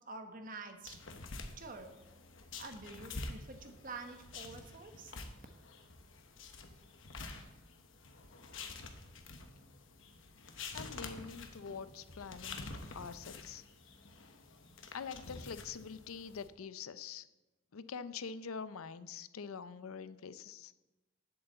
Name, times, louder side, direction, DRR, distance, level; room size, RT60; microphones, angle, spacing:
voice 1, 0.1-1.0 1.6-1.9 2.6-5.1, right 3 dB, 40° right, 6 dB, 1.1 m, -47 dB
sound 1, 0.8-16.5, left 3 dB, 65° left, 1.1 m, -48 dB
voice 2, 10.7-12.7 12.9-13.6 14.9-17.3 17.7-20.7, left 6 dB, 85° left, 14 dB, 0.5 m, -45 dB
8.1 x 7.8 x 7.6 m, 1.1 s
head